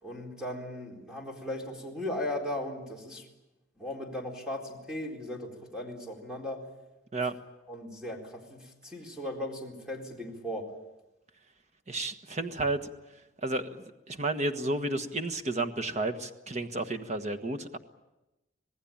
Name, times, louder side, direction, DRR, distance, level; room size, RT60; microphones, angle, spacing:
voice 1, 0.0-3.3 3.8-6.6 7.7-10.7, left 1 dB, 5° right, 0 dB, 4.2 m, -37 dB
voice 2, 11.9-12.9 13.4-17.8, right 2 dB, 35° right, 8 dB, 1.4 m, -32 dB
26.5 x 19.0 x 8.8 m, 0.99 s
head